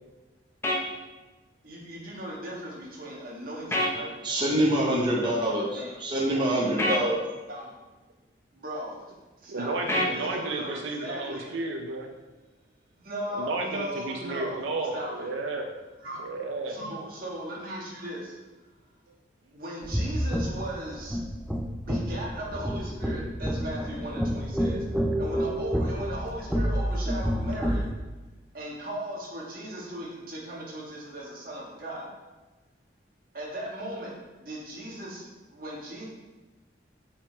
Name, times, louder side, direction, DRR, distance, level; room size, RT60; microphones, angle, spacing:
sound 1, 0.6-0.8 3.7-3.9 6.8-7.0 9.9-10.1, left 1 dB, 15° left, 0.7 m, -25 dB
voice 1, 1.6-4.1 5.4-5.9 6.2-7.0 7.5-7.7 8.5-8.9 9.4-9.8 10.1-11.5 13.0-15.3 16.0-16.3 16.7-18.3 19.5-21.2 21.8-24.8 25.2-27.9 28.5-32.1 33.3-34.1 34.4-35.2 35.5-36.1, right 1 dB, 50° right, -4 dB, 1.5 m, -37 dB
voice 2, 4.2-7.2, right 1 dB, 25° right, -4 dB, 0.8 m, -25 dB
voice 3, 9.5-12.1 13.3-15.7 16.2-16.8, right 3 dB, 80° right, 2 dB, 0.5 m, -32 dB
sound 2, 19.8-27.9, equal, 5° right, 0.3 m, -29 dB
5.7 x 5.1 x 3.3 m, 1.2 s
head